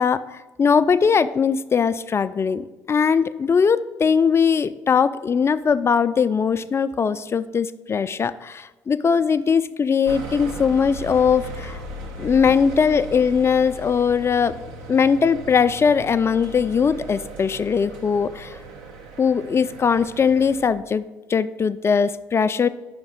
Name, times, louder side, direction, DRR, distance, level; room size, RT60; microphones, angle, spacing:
voice 1, 0.0-11.8 12.2-14.6 14.9-18.6 19.2-22.7, left 6 dB, 30° left, 13 dB, 0.4 m, -20 dB
sound 1, 10.1-20.7, right 1 dB, 75° right, 1.0 m, -37 dB
5.2 x 5.1 x 6.4 m, 1.2 s
hypercardioid pair, 55°, 9 cm